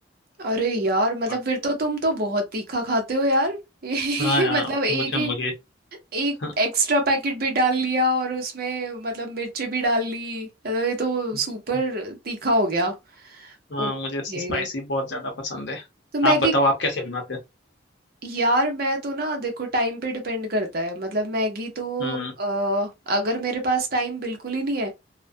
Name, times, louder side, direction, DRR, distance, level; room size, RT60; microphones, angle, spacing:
voice 1, 0.4-5.3 6.1-12.9 13.2-13.9 14.3-14.7 16.1-16.5 18.2-24.9, right 1 dB, 55° right, 0.7 m, -25 dB
voice 2, 4.2-4.6 4.9-5.5 6.4-6.5 13.7-15.8 16.2-17.4 22.0-22.3, left 1 dB, 65° left, 0.7 m, -26 dB
2.3 x 2.1 x 2.5 m
head